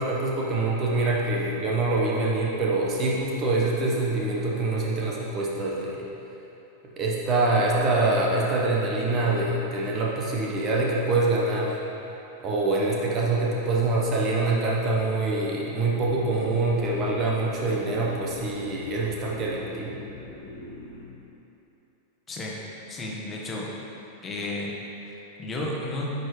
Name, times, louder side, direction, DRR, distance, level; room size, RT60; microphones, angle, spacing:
voice 1, 0.0-6.0 7.0-11.8 12.4-19.9, right 2 dB, 30° right, -4 dB, 1.3 m, -25 dB
sound 1, 15.9-21.0, left 2 dB, 70° left, 1.7 m, -42 dB
voice 2, 22.9-23.7 24.2-24.7 25.0-26.1, left 2 dB, 20° left, -3 dB, 1.5 m, -33 dB
10.0 x 6.8 x 3.4 m, 3.0 s
figure-of-eight pair, 90°, 0 cm